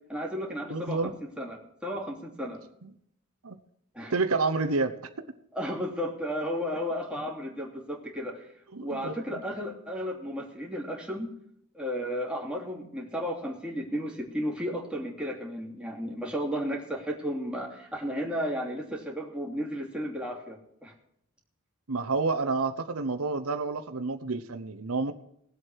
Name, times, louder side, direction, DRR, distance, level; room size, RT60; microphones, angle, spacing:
voice 1, 0.1-2.6 3.9-4.1 5.5-8.5 8.8-11.3 11.7-20.9, equal, 5° right, -2 dB, 2.9 m, -33 dB
voice 2, 0.7-1.2 2.8-2.9 3.4-3.6 4.1-4.9 8.7-9.1 21.9-25.1, right 3 dB, 85° right, 8 dB, 1.0 m, -29 dB
20.0 x 7.9 x 4.7 m, 0.73 s
head